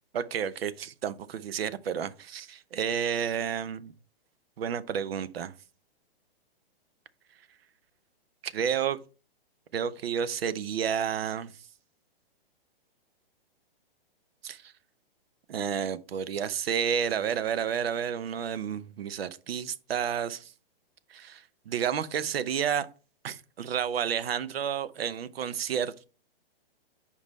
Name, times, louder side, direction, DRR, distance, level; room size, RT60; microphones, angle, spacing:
voice 1, 0.1-3.9 4.6-5.5 8.4-9.0 9.7-11.5 14.4-14.7 15.5-20.5 21.1-22.9 23.2-26.0, right 8 dB, 75° right, 0.7 m, -31 dB
5.3 x 5.0 x 3.9 m
hypercardioid pair, 155°, 30 cm